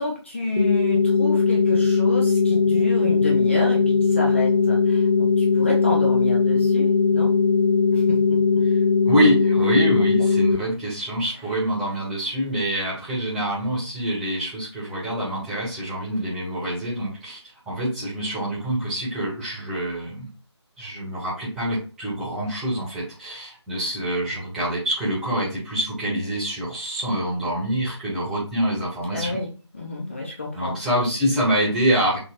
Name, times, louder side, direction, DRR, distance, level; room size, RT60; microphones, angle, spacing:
voice 1, 0.0-7.3 7.9-8.4 29.1-30.8, left 2 dB, 25° left, -2 dB, 0.7 m, -29 dB
sound 1, 0.6-10.6, left 4 dB, 70° left, 0.7 m, -19 dB
voice 2, 9.0-17.4 17.7-20.3 20.8-29.4 30.5-32.2, right 1 dB, ahead, -11 dB, 0.9 m, -25 dB
5.7 x 2.0 x 4.0 m, 0.35 s
figure-of-eight pair, 160°, 15 cm